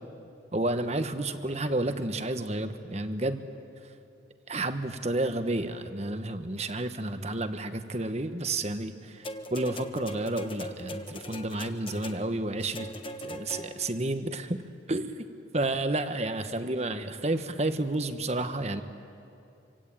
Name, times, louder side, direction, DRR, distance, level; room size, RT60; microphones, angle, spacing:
voice 1, 0.5-3.5 4.5-12.9 13.2-14.6 14.9-15.2 15.5-18.8, right 2 dB, 35° right, 9 dB, 1.3 m, -31 dB
sound 1, 9.2-14.0 15.0-15.1, equal, 25° left, 1.2 m, -40 dB
26.0 x 25.0 x 9.1 m, 2.7 s
head